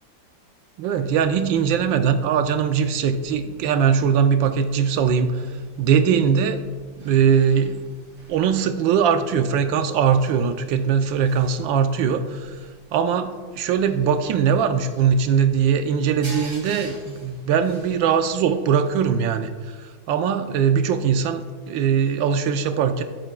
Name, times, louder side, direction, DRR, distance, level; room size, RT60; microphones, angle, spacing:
voice 1, 0.8-5.5 5.8-6.6 7.0-7.8 8.3-12.5 12.9-13.3 13.6-19.5 19.8-23.0, right 7 dB, 85° right, 8 dB, 1.4 m, -21 dB
sound 1, 1.0-19.0, right 2 dB, 70° right, 3.5 m, -48 dB
21.0 x 7.7 x 2.2 m, 1.5 s
omnidirectional pair, 2.1 m